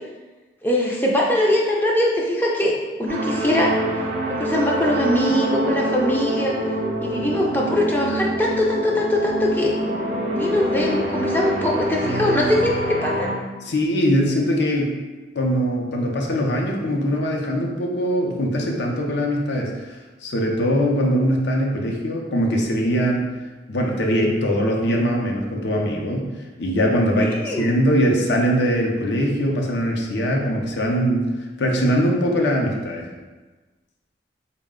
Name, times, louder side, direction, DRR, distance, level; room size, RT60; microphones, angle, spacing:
voice 1, 0.6-2.7 3.0-6.6 7.0-9.8 10.3-13.3 27.2-27.7, left 1 dB, 10° left, -3 dB, 0.4 m, -22 dB
sound 1, 3.1-13.3, right 1 dB, 40° right, 0.5 m, -25 dB
voice 2, 13.6-14.9 15.3-19.7 20.2-23.3 23.7-26.3 26.6-31.2 31.6-33.1, equal, 80° left, 0 dB, 0.6 m, -21 dB
4.0 x 2.1 x 3.6 m, 1.2 s
head